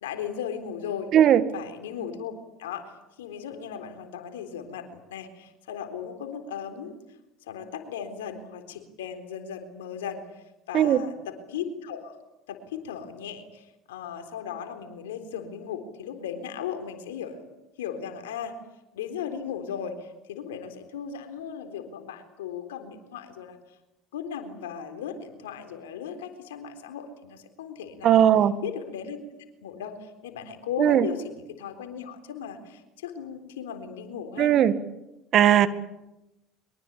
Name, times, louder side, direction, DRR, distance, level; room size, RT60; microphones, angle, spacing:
voice 1, 0.0-1.1 1.5-2.3 2.6-2.9 3.2-7.0 7.4-10.2 10.7-12.2 12.5-17.4 17.8-18.6 18.9-23.6 24.1-28.2 28.6-29.2 29.6-34.6, left 8 dB, 85° left, 7 dB, 3.8 m, -37 dB
voice 2, 1.1-1.4 10.7-11.0 28.0-28.5 30.8-31.1 34.4-34.7 35.3-35.7, right 10 dB, 55° right, 12 dB, 1.9 m, -18 dB
24.0 x 23.0 x 8.5 m, 0.95 s
hypercardioid pair, 75°, 0 cm